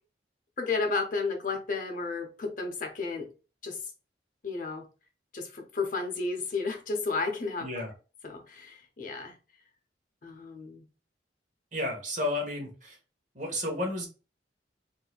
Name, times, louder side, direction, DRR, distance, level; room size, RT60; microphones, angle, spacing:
voice 1, 0.6-3.3 3.6-3.8 4.4-4.9 5.3-7.7 8.2-9.3 10.2-10.9, left 4 dB, 50° left, 0.7 m, -32 dB
voice 2, 7.6-7.9 11.7-13.0 13.3-14.1, left 1 dB, 45° right, 1.1 m, -32 dB
4.0 x 2.6 x 2.3 m
head